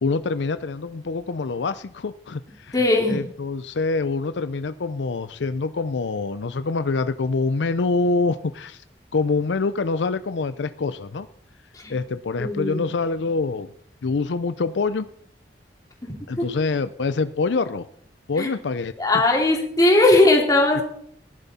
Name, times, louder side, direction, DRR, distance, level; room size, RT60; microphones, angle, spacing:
voice 1, 0.0-2.7 3.1-8.8 9.1-11.3 11.9-13.7 14.0-15.1 16.3-17.8 18.3-18.9, left 3 dB, 85° left, 12 dB, 0.5 m, -25 dB
voice 2, 2.7-3.2 11.7-11.9 12.4-12.9 16.0-16.4 18.4-18.5 19.0-20.8, left 2 dB, 20° left, 0 dB, 2.7 m, -19 dB
18.0 x 10.5 x 4.2 m, 0.66 s
head